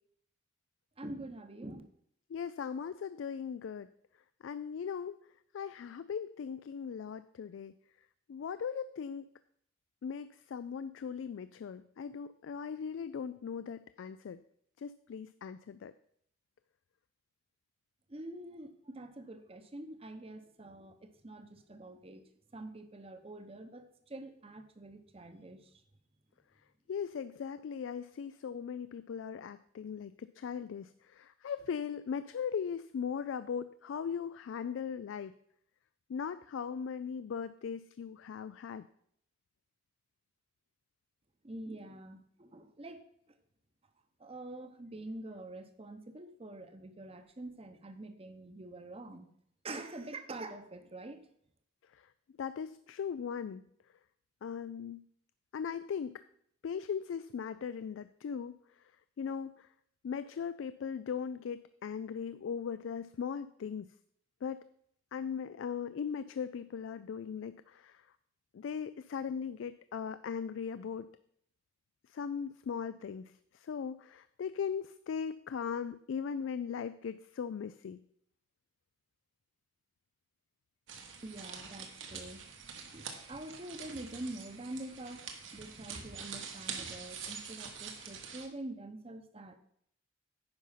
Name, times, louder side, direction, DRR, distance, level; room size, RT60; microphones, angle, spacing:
voice 1, 1.0-1.8 18.1-22.2 22.5-25.6 41.4-43.0 44.2-49.3 49.6-51.2 81.2-82.4 82.9-89.6, right 2 dB, 30° right, 8 dB, 0.8 m, -46 dB
voice 2, 2.3-3.9 4.4-5.1 5.5-7.7 8.3-9.3 10.0-14.4 14.8-15.9 26.9-35.3 36.1-38.9 52.4-53.6 54.4-55.0 55.5-56.2 56.6-58.5 59.2-59.7 60.0-63.9 64.4-64.7 65.1-68.0 68.5-71.1 72.1-78.0, left 7 dB, 75° left, 13 dB, 0.3 m, -39 dB
sound 1, 80.9-88.5, right 6 dB, 75° right, 1.3 m, -45 dB
9.8 x 5.5 x 5.6 m, 0.69 s
head